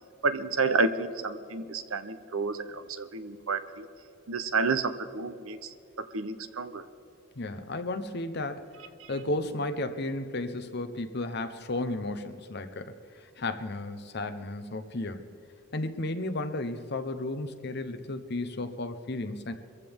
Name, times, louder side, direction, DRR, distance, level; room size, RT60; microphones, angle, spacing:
voice 1, 0.2-3.9 4.3-6.8, right 4 dB, 80° right, 11 dB, 0.8 m, -30 dB
voice 2, 7.4-8.7 9.1-15.2 15.7-19.5, left 2 dB, 50° left, 8 dB, 0.9 m, -33 dB
24.0 x 15.0 x 3.6 m, 2.6 s
head